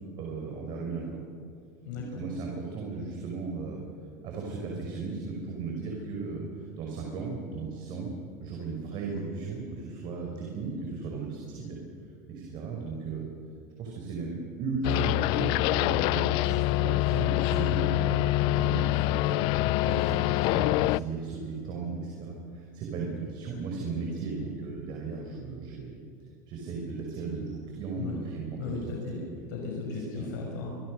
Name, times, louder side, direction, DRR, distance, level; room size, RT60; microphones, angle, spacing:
voice 1, 0.2-1.0 1.9-3.8 4.2-8.1 8.4-11.8 12.3-13.2 13.8-14.3 14.6-26.0 26.5-29.1 29.9-30.3, right 4 dB, 50° right, 0 dB, 5.7 m, -36 dB
voice 2, 1.8-2.2 19.6-19.9 28.0-28.2 28.6-30.7, left 4 dB, 80° left, -1 dB, 6.1 m, -36 dB
sound 1, 14.8-21.0, left 19 dB, 55° left, 0.5 m, -25 dB
26.5 x 22.0 x 6.6 m, 2.5 s
supercardioid pair, 130°, 10 cm